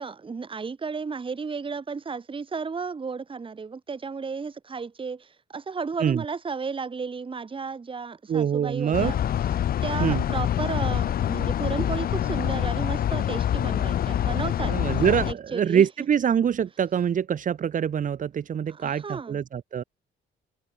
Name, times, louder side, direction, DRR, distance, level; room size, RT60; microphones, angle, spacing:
voice 1, 0.0-9.2 9.8-15.8 18.7-19.4, right 5 dB, 25° right, 1.1 m, -33 dB
voice 2, 8.3-9.1 10.0-10.2 14.7-19.8, right 8 dB, 40° right, 0.6 m, -24 dB
sound 1, 8.9-15.3, left 10 dB, 50° left, 0.5 m, -26 dB
cardioid pair, 90°, 20 cm